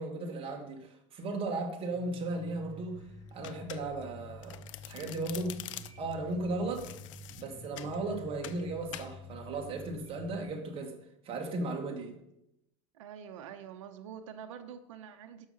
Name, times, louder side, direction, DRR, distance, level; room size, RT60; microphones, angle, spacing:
voice 1, 0.0-3.0 3.3-5.7 6.0-6.9 7.4-11.0 11.2-12.1, right 2 dB, 35° right, 1.8 m, -36 dB
sound 1, 1.9-10.4, left 1 dB, 20° left, 1.3 m, -49 dB
Domestic sounds home sounds, 3.4-4.1 4.4-6.1 6.7-8.0 8.4-8.6 8.9-9.1, left 14 dB, 85° left, 0.5 m, -45 dB
voice 2, 12.9-15.5, right 8 dB, 85° right, 0.8 m, -46 dB
6.5 x 6.2 x 5.6 m
supercardioid pair, 125°, 16 cm